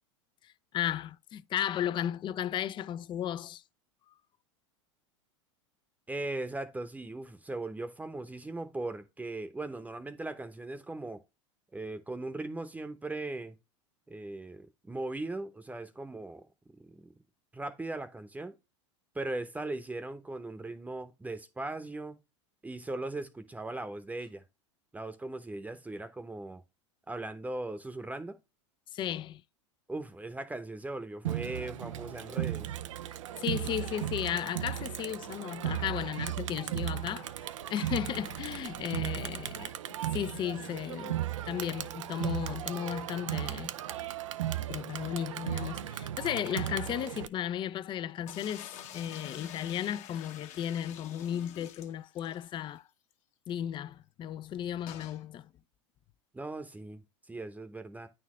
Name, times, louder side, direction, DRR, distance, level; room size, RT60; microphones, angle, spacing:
voice 1, 0.4-3.6 28.9-29.4 33.4-37.3 37.7-39.8 40.1-43.7 44.7-52.8 53.5-55.5, left 10 dB, 30° left, 0.4 m, -35 dB
voice 2, 6.1-11.2 11.7-13.6 14.1-16.4 16.8-17.1 17.5-18.5 19.1-22.2 22.6-24.4 24.9-26.6 27.1-28.4 29.9-32.7 56.3-57.0 57.3-58.1, right 2 dB, 10° right, 0.8 m, -39 dB
Crowd, 31.2-47.3, right 12 dB, 85° right, 0.5 m, -36 dB
sound 1, 48.3-52.5 52.8-52.9 53.1-53.2 54.9-55.2, left 10 dB, 50° left, 1.1 m, -47 dB
9.1 x 4.3 x 3.0 m
hypercardioid pair, 100°, 16 cm